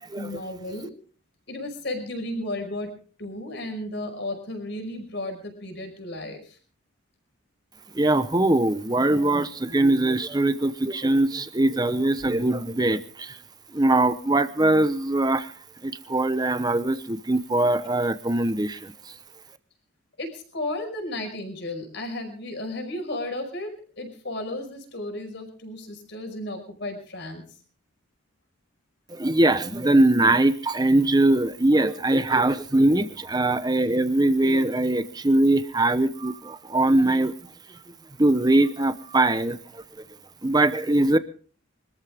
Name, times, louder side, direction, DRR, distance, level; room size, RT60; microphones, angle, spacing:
voice 1, 0.2-0.9 1.5-2.9 3.2-6.4 20.2-23.7 24.0-27.4, left 1 dB, 55° left, 5 dB, 5.4 m, -33 dB
voice 2, 7.9-13.3 13.7-15.5 15.8-18.9 29.1-37.3 38.2-39.6 40.4-41.2, right 2 dB, 20° right, 12 dB, 0.9 m, -21 dB
24.5 x 13.5 x 3.6 m, 0.42 s
head